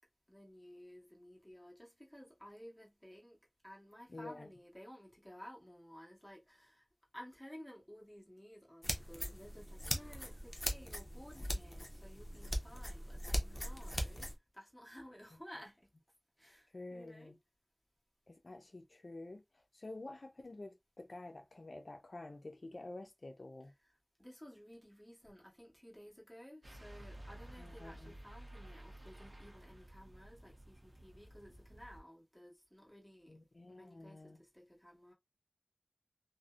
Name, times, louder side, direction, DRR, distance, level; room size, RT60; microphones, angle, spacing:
voice 1, 0.3-3.4 3.6-6.9 7.1-15.9 16.4-17.3 24.2-33.4 33.7-35.1, equal, 5° left, 1.2 m, -55 dB
voice 2, 4.1-4.5 16.7-17.4 18.3-23.7 27.6-28.2 33.3-34.4, left 2 dB, 80° left, 0.3 m, -49 dB
sound 1, 8.8-14.3, equal, 35° left, 0.6 m, -40 dB
sound 2, 26.6-32.0, right 1 dB, 60° right, 0.7 m, -53 dB
2.6 x 2.0 x 2.3 m
wide cardioid pair, 45°, 0 cm